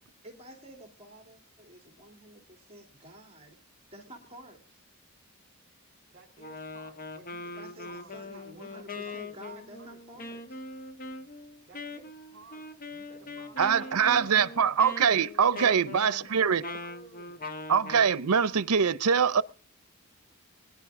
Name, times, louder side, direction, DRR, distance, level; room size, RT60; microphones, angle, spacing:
voice 1, 0.2-3.6 3.9-4.8 7.4-10.6 13.2-13.3, right 1 dB, 25° right, 2.8 m, -50 dB
voice 2, 6.1-10.3 11.7-12.6 12.9-14.4 15.6-17.5, right 3 dB, 50° right, 3.5 m, -55 dB
Wind instrument woodwind instrument, 6.4-18.1, left 3 dB, 40° left, 1.3 m, -42 dB
voice 3, 13.6-16.6 17.7-19.4, right 7 dB, 85° right, 0.7 m, -23 dB
22.5 x 10.5 x 3.6 m
head